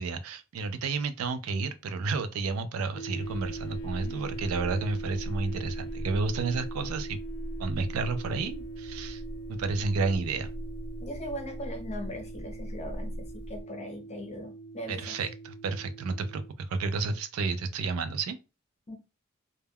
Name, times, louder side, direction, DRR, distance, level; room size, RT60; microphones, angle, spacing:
voice 1, 0.0-7.2 7.6-9.2 9.5-10.5 14.9-18.4, right 4 dB, 70° right, 0.4 m, -31 dB
sound 1, 2.9-16.5, right 3 dB, 80° left, 0.6 m, -42 dB
sound 2, 3.2-13.6, equal, 10° right, 0.7 m, -40 dB
voice 2, 11.0-15.2 18.9-19.0, equal, 30° left, 0.6 m, -40 dB
2.2 x 2.1 x 3.3 m
head